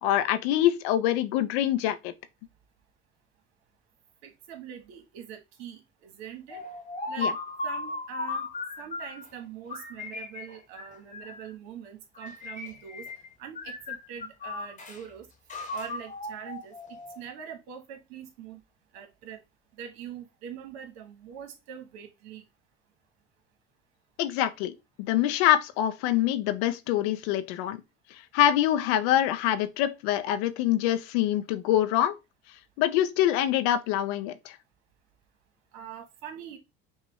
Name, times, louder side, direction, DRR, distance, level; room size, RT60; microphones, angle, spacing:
voice 1, 0.0-2.1 7.2-7.3 24.2-24.7 25.0-27.8 28.3-32.2 32.8-34.5, left 12 dB, 80° left, 0.6 m, -25 dB
voice 2, 4.2-6.6 7.1-7.3 7.6-8.5 8.8-13.0 13.4-15.3 15.7-18.6 18.9-19.4 19.7-22.4 35.7-36.6, right 8 dB, 80° right, 1.2 m, -43 dB
sound 1, 6.5-9.3 9.7-11.5 12.2-13.3 13.6-15.0 15.5-17.3, left 3 dB, 25° left, 1.1 m, -36 dB
5.5 x 2.3 x 3.0 m
supercardioid pair, 80°, 31 cm